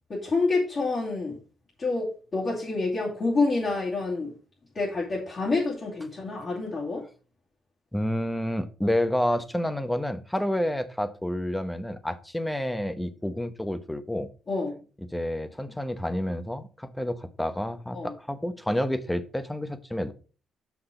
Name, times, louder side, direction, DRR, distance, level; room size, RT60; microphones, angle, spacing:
voice 1, 0.1-1.4 1.8-4.3 4.7-7.0 14.5-14.8 17.9-18.1, left 3 dB, 40° left, 2.6 m, -27 dB
voice 2, 7.9-14.3 15.1-20.1, left 1 dB, 5° left, 0.9 m, -29 dB
6.3 x 5.9 x 4.9 m
cardioid pair, 90°, 0 cm